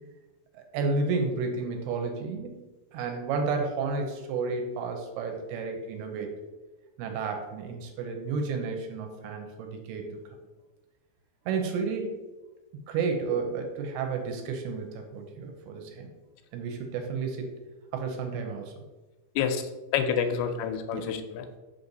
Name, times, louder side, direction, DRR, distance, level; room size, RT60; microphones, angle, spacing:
voice 1, 0.5-2.6 2.9-6.3 7.0-10.2 11.5-12.2 12.9-16.1 16.5-17.5 17.9-18.7 20.9-21.1, right 4 dB, 80° right, 4 dB, 2.7 m, -31 dB
voice 2, 19.9-21.6, left 7 dB, 80° left, 7 dB, 2.5 m, -28 dB
5.8 x 5.6 x 4.0 m, 1.1 s
omnidirectional pair, 4.7 m